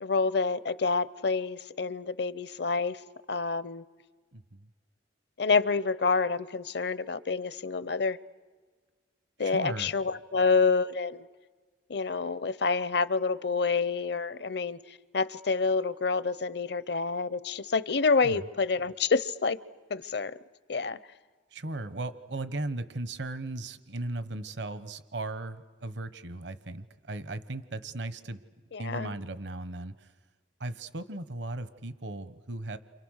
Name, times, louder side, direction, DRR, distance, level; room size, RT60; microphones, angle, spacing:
voice 1, 0.0-3.0 3.3-3.8 5.4-8.2 9.4-11.3 11.9-19.6 19.9-20.4 20.7-21.0 28.7-29.1, left 4 dB, 60° left, 16 dB, 0.7 m, -28 dB
voice 2, 4.3-4.7 9.4-9.9 18.2-18.4 21.5-28.4 28.8-30.1 30.6-32.8, right 2 dB, 65° right, 12 dB, 1.1 m, -37 dB
29.5 x 27.0 x 6.5 m, 1.4 s
head